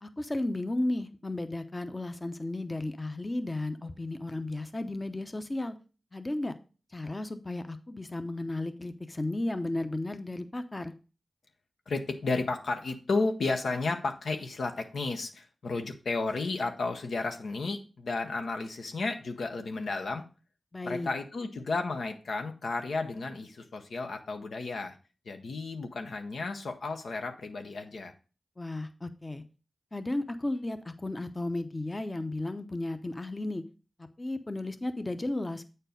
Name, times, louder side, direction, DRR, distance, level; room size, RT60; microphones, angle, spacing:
voice 1, 0.0-5.7 6.1-6.5 6.9-10.9 20.7-21.1 28.6-29.4 29.9-33.6 34.2-35.6, left 2 dB, 30° left, 9 dB, 0.8 m, -34 dB
voice 2, 11.9-20.2 20.8-25.0 25.3-28.1, left 3 dB, 80° left, 5 dB, 0.8 m, -33 dB
8.1 x 4.4 x 5.1 m, 0.35 s
cardioid pair, 45°, 0 cm